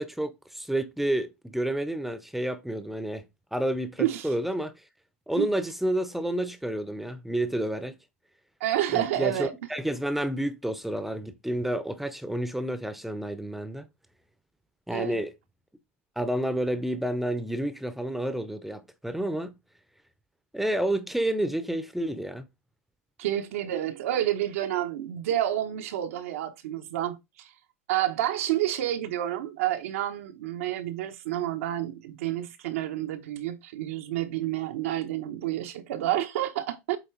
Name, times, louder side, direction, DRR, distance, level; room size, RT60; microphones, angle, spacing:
voice 1, 0.0-3.2 3.5-4.7 5.3-8.0 8.9-13.9 14.9-15.3 16.2-19.5 20.5-22.5, right 1 dB, 5° right, 0.8 m, -30 dB
voice 2, 4.0-4.3 5.4-5.5 8.6-9.5 14.9-15.2 23.2-27.5 27.9-37.0, right 12 dB, 75° right, 1.0 m, -29 dB
8.0 x 3.1 x 4.6 m
hypercardioid pair, 105°, 7 cm